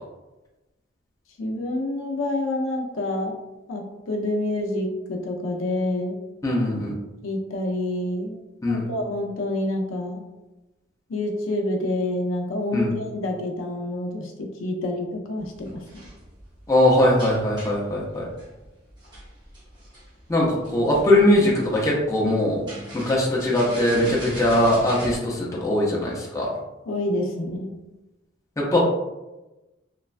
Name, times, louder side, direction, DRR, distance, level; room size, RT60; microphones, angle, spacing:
voice 1, 1.4-3.3 3.7-6.2 7.2-8.4 8.7-10.2 11.1-15.8 26.9-27.7, left 1 dB, 80° left, 2 dB, 0.5 m, -27 dB
voice 2, 6.4-6.9 8.6-8.9 12.7-13.0 16.7-18.3 20.3-26.5 28.6-28.9, left 1 dB, 15° left, -4 dB, 0.5 m, -21 dB
sound 1, 15.4-25.2, right 1 dB, 20° right, 0.7 m, -41 dB
3.0 x 2.2 x 2.4 m, 1.0 s
head